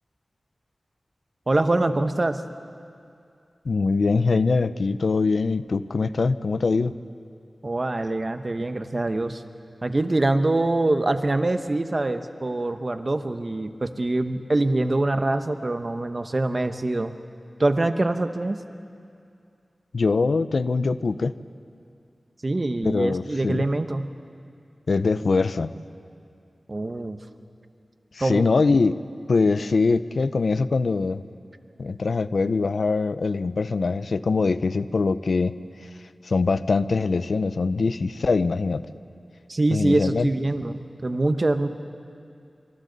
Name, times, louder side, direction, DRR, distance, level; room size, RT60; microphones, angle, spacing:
voice 1, 1.5-2.4 7.6-9.4 9.8-17.1 17.6-18.6 22.4-24.1 26.7-27.2 28.2-28.4 39.5-41.7, right 2 dB, 45° right, 8 dB, 1.1 m, -24 dB
voice 2, 3.7-6.9 19.9-21.3 22.8-23.6 24.9-25.7 28.2-29.0 29.3-31.2 31.8-35.6 36.2-38.8 39.7-40.3, left 4 dB, 85° left, 13 dB, 0.6 m, -23 dB
27.0 x 26.5 x 4.1 m, 2.5 s
wide cardioid pair, 70°, 0 cm